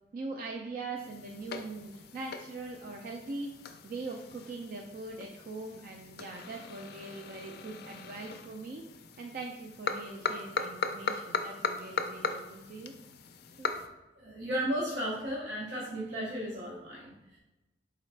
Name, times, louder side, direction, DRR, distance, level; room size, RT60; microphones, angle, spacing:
voice 1, 0.1-3.5 3.8-8.9 9.2-12.9 13.6-13.7, right 3 dB, 50° right, 1 dB, 0.3 m, -41 dB
sound 1, 1.0-13.9, left 5 dB, 60° left, 0.3 m, -39 dB
voice 2, 14.2-17.4, equal, 80° right, -4 dB, 0.8 m, -35 dB
3.8 x 3.2 x 3.2 m, 1.0 s
head